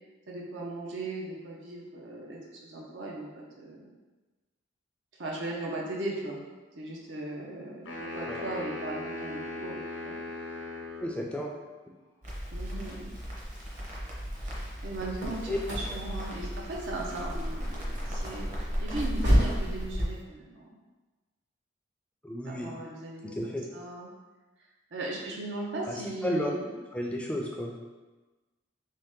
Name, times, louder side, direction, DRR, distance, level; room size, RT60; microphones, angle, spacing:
voice 1, 0.3-3.9 5.2-6.4 6.8-10.2 12.5-13.1 14.8-20.8 22.4-23.3 23.7-24.1 24.9-26.7, right 2 dB, 80° right, -3 dB, 0.7 m, -38 dB
sound 1, 7.9-11.2, left 2 dB, 85° left, 0.7 m, -38 dB
voice 2, 11.0-11.5 15.5-15.6 15.9-16.0 22.2-22.8 23.2-23.7 25.9-26.0 26.2-26.5 26.9-27.7, left 1 dB, 5° left, -1 dB, 0.3 m, -32 dB
Crackle, 12.2-20.0, equal, 40° right, 0.8 m, -35 dB
sound 2, 14.9-19.7, equal, 65° right, 1.2 m, -30 dB
3.2 x 2.8 x 3.6 m, 1.2 s
head